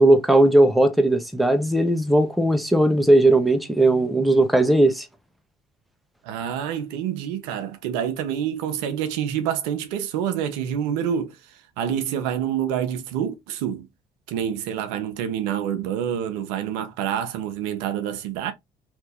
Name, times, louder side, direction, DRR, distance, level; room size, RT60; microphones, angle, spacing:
voice 1, 0.0-5.1, right 1 dB, ahead, 0.7 m, -18 dB
voice 2, 6.2-11.4 11.8-13.9 14.3-18.5, right 9 dB, 85° right, 0.6 m, -27 dB
2.8 x 2.5 x 3.4 m
hypercardioid pair, 60°, 20 cm